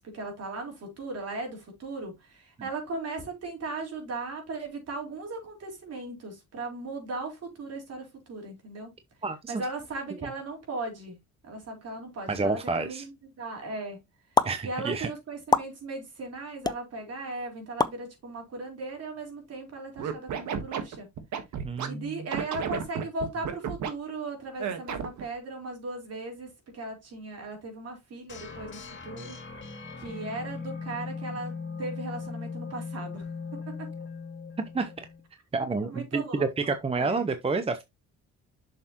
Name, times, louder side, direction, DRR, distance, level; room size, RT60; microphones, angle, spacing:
voice 1, 0.0-8.9 9.5-11.2 11.4-13.1 13.4-14.0 14.6-21.1 21.8-29.4 30.0-31.5 31.8-33.2 33.8-33.9 35.8-37.3, right 2 dB, 55° right, 4.2 m, -37 dB
voice 2, 9.2-9.6 10.1-10.2 12.3-13.1 14.4-15.1 21.6-22.3 34.7-35.1 35.5-37.8, right 4 dB, 20° right, 0.7 m, -29 dB
sound 1, 14.4-14.5 15.5-15.7 16.6-16.8 17.8-18.0, left 3 dB, 15° left, 0.5 m, -22 dB
Scratching (performance technique), 20.0-21.9 22.3-23.9 24.6-25.2, right 7 dB, 75° right, 1.5 m, -31 dB
sound 2, 28.3-35.2, left 4 dB, 40° left, 2.2 m, -39 dB
7.0 x 6.6 x 3.0 m
cardioid pair, 110°, 29 cm